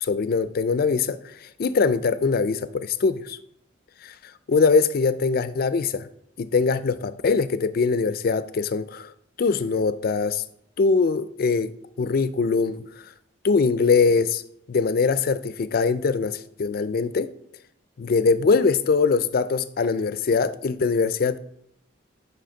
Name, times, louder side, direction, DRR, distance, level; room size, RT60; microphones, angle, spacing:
voice 1, 0.0-3.4 4.0-4.1 4.5-6.1 6.4-9.1 9.4-10.4 10.8-12.9 13.4-14.4 14.7-17.3 18.0-21.4, left 4 dB, 55° left, 0.4 m, -22 dB
7.7 x 5.3 x 3.9 m
head